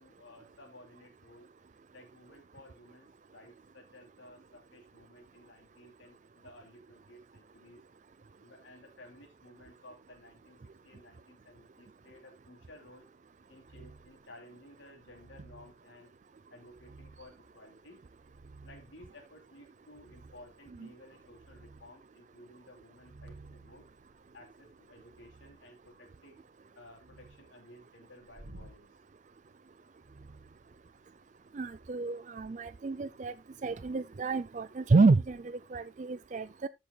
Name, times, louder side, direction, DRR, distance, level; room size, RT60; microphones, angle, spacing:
voice 1, 0.0-1.5 1.9-7.8 8.4-13.1 13.5-16.1 16.5-18.0 18.6-23.9 24.3-26.4 26.7-28.9, left 1 dB, 75° left, 2.9 m, -55 dB
sound 1, 13.6-14.2 15.0-15.8 16.7-17.4 18.0-19.0 19.9-20.6 21.0-21.9 22.9-25.6 26.9-27.5 28.3-28.8 30.0-31.2 31.6-31.9, right 2 dB, 75° right, 1.7 m, -55 dB
voice 2, 31.5-33.3 33.6-36.7, right 3 dB, 40° right, 0.4 m, -29 dB
14.5 x 7.1 x 2.2 m
head